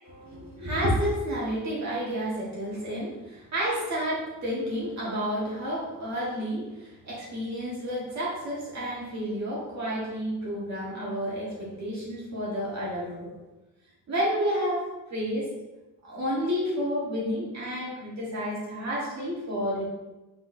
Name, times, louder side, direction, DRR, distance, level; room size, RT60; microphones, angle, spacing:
voice 1, 0.0-13.3 14.1-14.8 15.1-15.5 16.0-19.9, equal, 50° right, -6 dB, 1.4 m, -30 dB
4.3 x 4.0 x 2.7 m, 1.1 s
cardioid pair, 115°, 34 cm